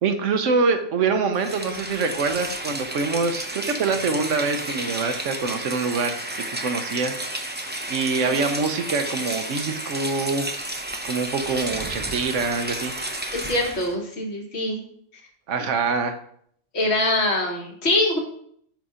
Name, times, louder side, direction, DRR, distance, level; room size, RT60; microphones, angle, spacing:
voice 1, 0.0-7.2 7.9-10.5 11.0-12.9 15.5-16.1, right 4 dB, 80° right, 7 dB, 1.2 m, -25 dB
Rain, 1.3-13.9, right 1 dB, 10° right, 0.5 m, -32 dB
voice 2, 13.3-14.8 16.7-18.2, left 2 dB, 60° left, 1 dB, 1.6 m, -23 dB
6.5 x 4.2 x 5.0 m, 0.66 s
omnidirectional pair, 1.3 m